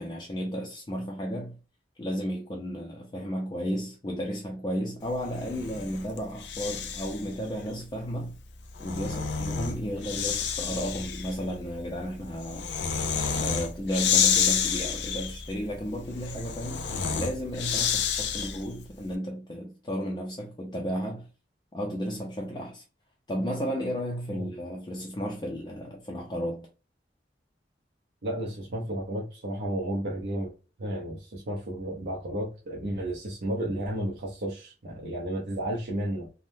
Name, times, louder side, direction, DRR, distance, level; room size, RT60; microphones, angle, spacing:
voice 1, 0.0-1.6 2.0-8.3 8.8-12.7 13.3-21.3 21.7-22.8 23.3-26.7, equal, 25° left, 0.4 m, -33 dB
Breathing, 5.3-7.3 8.5-18.8, left 7 dB, 80° left, 0.5 m, -29 dB
voice 2, 28.2-30.5 30.8-36.3, right 1 dB, 70° right, 0.7 m, -32 dB
3.4 x 2.1 x 2.6 m
head